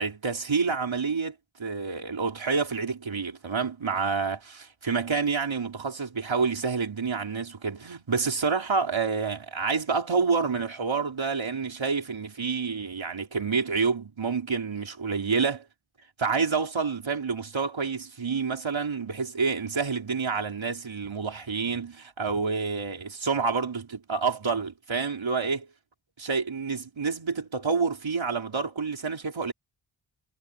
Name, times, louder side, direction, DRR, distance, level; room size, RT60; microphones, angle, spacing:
voice 1, 0.0-15.7 16.2-25.7 26.2-29.5, right 5 dB, 65° right, 4.1 m, -28 dB
wide cardioid pair, 100°, 49 cm